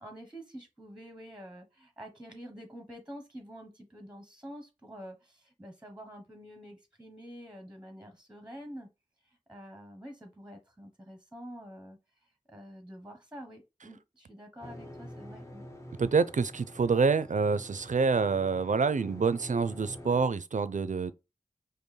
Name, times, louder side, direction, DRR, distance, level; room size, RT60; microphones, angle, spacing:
voice 1, 0.0-8.9 9.5-12.0 12.5-15.7, equal, 5° right, 0.8 m, -47 dB
sound 1, 14.6-20.3, equal, 20° left, 0.8 m, -47 dB
voice 2, 16.0-21.1, right 5 dB, 65° right, 0.4 m, -27 dB
5.3 x 2.1 x 3.1 m
wide cardioid pair, 45°, 14 cm